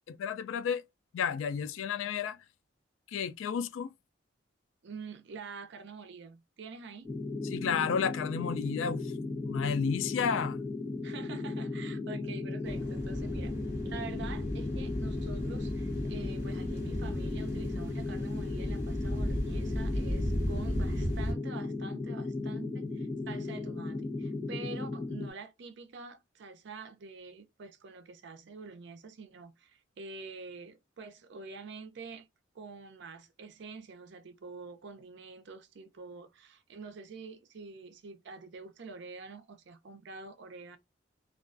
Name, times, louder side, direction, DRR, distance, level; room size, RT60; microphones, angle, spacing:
voice 1, 0.1-0.8 1.1-2.4 3.1-3.9 7.5-9.1 9.5-10.6, left 6 dB, 80° left, 0.3 m, -32 dB
voice 2, 4.8-7.1 11.0-13.5 13.8-32.3 32.5-40.8, right 4 dB, 60° right, 0.5 m, -46 dB
sound 1, 7.0-25.3, left 3 dB, 20° left, 0.8 m, -36 dB
sound 2, 12.6-21.3, equal, 15° right, 1.1 m, -35 dB
2.3 x 2.2 x 2.4 m
head